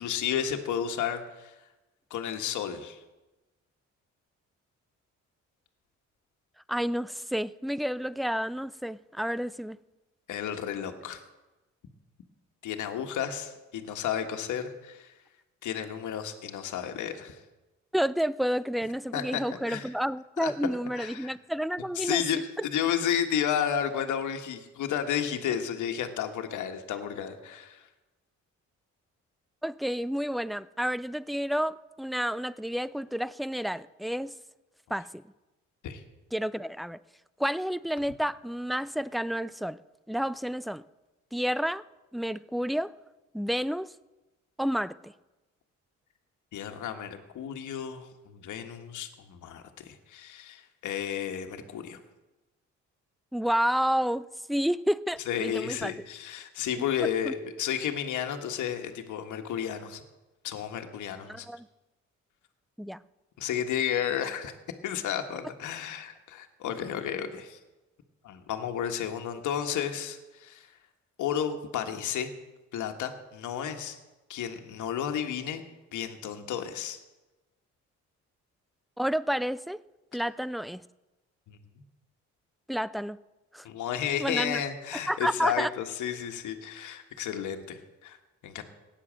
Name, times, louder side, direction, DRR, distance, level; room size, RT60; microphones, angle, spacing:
voice 1, 0.0-1.5 2.1-3.0 10.3-11.2 12.6-15.1 15.6-17.4 19.1-19.9 20.4-20.5 20.9-21.3 21.9-27.9 35.8-36.0 46.5-52.0 55.3-60.0 60.4-61.5 63.4-64.5 64.8-67.6 68.2-70.7 71.2-72.3 72.7-74.0 74.3-75.6 75.9-77.0 81.5-81.6 83.6-88.2 88.4-88.6, left 9 dB, 80° left, 6 dB, 1.6 m, -32 dB
voice 2, 6.7-9.8 17.9-22.4 29.6-34.3 34.9-35.1 36.3-37.0 37.4-39.8 40.1-40.8 41.3-41.8 42.1-42.9 43.3-43.9 44.6-45.1 53.3-55.9 57.2-57.3 61.3-61.7 62.8-63.0 79.0-79.8 80.1-80.8 82.7-83.2 83.5-83.7 84.2-84.6 85.1-85.7, equal, ahead, 18 dB, 0.4 m, -30 dB
16.5 x 9.9 x 7.5 m, 1.1 s
cardioid pair, 90°, 30 cm